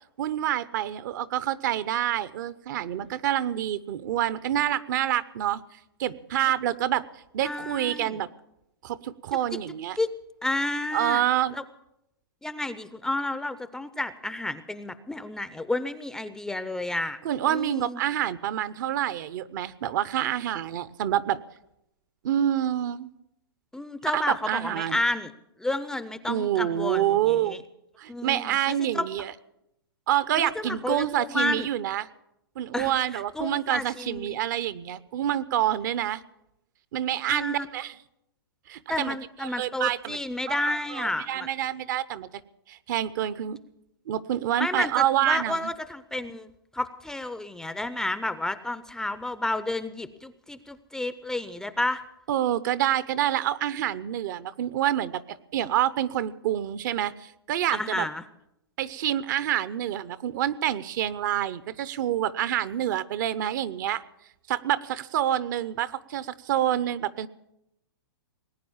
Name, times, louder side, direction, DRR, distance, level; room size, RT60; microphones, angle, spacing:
voice 1, 0.2-5.6 6.0-7.0 7.3-8.3 8.8-10.0 10.9-11.6 17.2-21.4 22.2-23.1 24.1-25.0 26.3-27.6 28.0-29.3 30.1-32.1 32.6-36.2 36.9-37.9 38.7-39.2 39.4-40.2 40.5-42.3 42.7-43.6 44.1-45.7 52.3-55.2 55.5-58.1 58.8-64.0 64.5-67.3, right 11 dB, 50° right, 16 dB, 0.7 m, -27 dB
voice 2, 7.4-8.2 9.5-9.6 10.0-10.1 10.4-11.2 11.5-11.6 12.4-17.2 17.5-18.0 23.7-25.3 25.6-27.6 28.1-29.1 30.4-31.7 32.7-34.4 37.3-37.7 38.9-41.5 44.6-52.0 57.7-58.2, left 2 dB, 5° left, 12 dB, 0.5 m, -31 dB
19.5 x 9.2 x 7.2 m, 0.83 s
hypercardioid pair, 135°, 13 cm